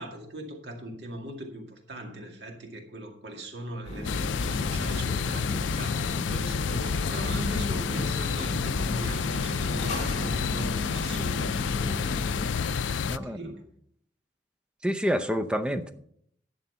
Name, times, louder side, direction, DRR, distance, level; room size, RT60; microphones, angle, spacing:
voice 1, 0.0-13.6, right 1 dB, 65° right, 3 dB, 2.1 m, -40 dB
sound 1, 3.8-12.5, left 1 dB, 40° left, 3.6 m, -36 dB
sound 2, 4.0-13.2, left 6 dB, 90° left, 0.4 m, -29 dB
voice 2, 13.0-13.4 14.8-15.9, equal, 5° right, 9 dB, 0.7 m, -28 dB
11.5 x 6.9 x 5.6 m, 0.68 s
head